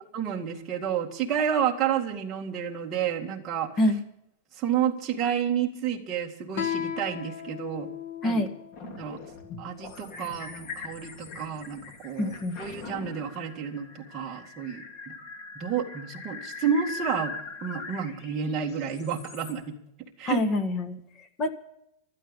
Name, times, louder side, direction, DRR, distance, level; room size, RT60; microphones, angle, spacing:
voice 1, 0.1-3.7 4.5-7.9 8.2-8.5 8.9-9.2 9.6-15.2 15.6-17.4 17.6-19.8 20.2-20.4, right 8 dB, 20° right, 0 dB, 2.1 m, -30 dB
Guitar, 6.5-9.8, left 9 dB, 60° left, 1.6 m, -36 dB
sound 1, 8.7-19.5, left 4 dB, 40° left, 2.9 m, -41 dB
voice 2, 12.2-12.6 20.2-21.0 21.4-21.5, left 1 dB, 20° left, 8 dB, 1.6 m, -25 dB
16.0 x 12.5 x 5.4 m, 0.76 s
supercardioid pair, 165°, 0 cm